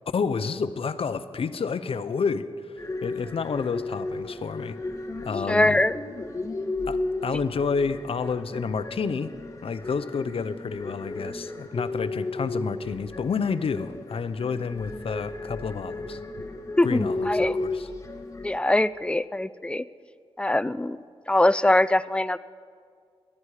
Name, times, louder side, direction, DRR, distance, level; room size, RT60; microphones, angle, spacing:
voice 1, 0.1-4.8 5.2-5.8 6.9-9.3 9.6-16.2 16.8-17.9, left 5 dB, 70° left, 13 dB, 0.6 m, -29 dB
sound 1, 2.8-18.6, left 2 dB, 30° left, 1.3 m, -34 dB
voice 2, 5.5-5.9 16.8-17.5 18.4-19.8 20.4-21.0 21.3-22.4, left 1 dB, 10° left, 16 dB, 0.4 m, -22 dB
18.5 x 12.5 x 4.9 m, 2.1 s
cardioid pair, 70°, 10 cm